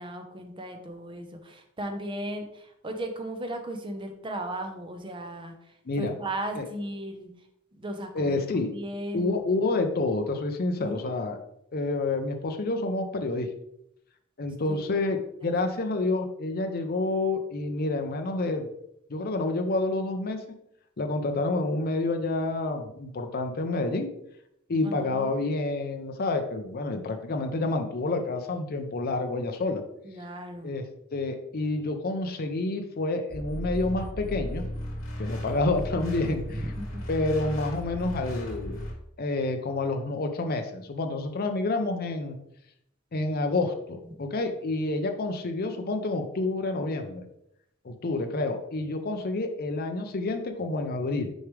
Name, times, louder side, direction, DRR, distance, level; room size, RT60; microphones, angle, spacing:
voice 1, 0.0-7.3 7.7-9.3 10.8-11.1 14.7-15.1 15.4-15.7 24.8-25.3 30.0-30.8 36.6-36.7 36.9-37.0, right 1 dB, 25° right, 5 dB, 0.7 m, -36 dB
voice 2, 5.9-6.2 6.6-6.7 8.1-8.7 9.1-11.4 11.7-13.5 14.4-18.7 19.1-20.4 21.0-24.1 24.7-29.8 30.6-30.9 31.1-34.6 35.2-36.6 37.1-38.8 39.2-42.4 43.1-47.2 47.8-51.3, left 2 dB, 45° left, 6 dB, 0.6 m, -28 dB
sound 1, 33.3-38.9, equal, 75° left, 2.5 m, -35 dB
6.3 x 4.8 x 3.3 m, 0.77 s
head